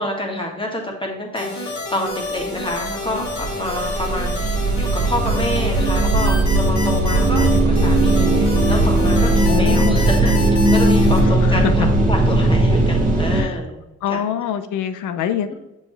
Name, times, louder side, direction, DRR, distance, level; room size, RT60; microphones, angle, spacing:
voice 1, 0.0-13.8 14.1-14.2, left 1 dB, 15° left, 0 dB, 1.8 m, -28 dB
sound 1, 1.4-11.2, left 2 dB, 65° left, 2.1 m, -29 dB
sound 2, 2.4-2.5 2.7-13.4, right 2 dB, 25° right, 1.5 m, -18 dB
voice 2, 9.5-10.1 11.3-11.9 13.3-13.6 14.0-15.5, left 9 dB, 85° left, 10 dB, 0.6 m, -25 dB
6.9 x 4.8 x 3.3 m, 0.99 s
cardioid pair, 90°, 30 cm